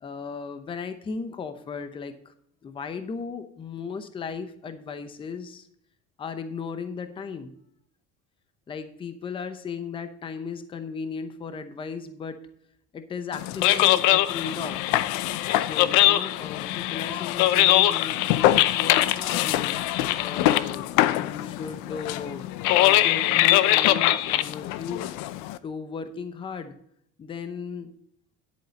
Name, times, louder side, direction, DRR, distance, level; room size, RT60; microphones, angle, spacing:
voice 1, 0.0-2.1 2.6-5.7 6.2-7.6 8.7-12.4 12.9-15.0 15.6-19.7 20.2-25.1 25.6-26.7 27.2-27.9, left 5 dB, 15° left, 9 dB, 0.7 m, -36 dB
sound 1, 13.3-25.6, left 15 dB, 85° left, 0.7 m, -22 dB
10.5 x 8.5 x 4.1 m, 0.68 s
cardioid pair, 180°, 29 cm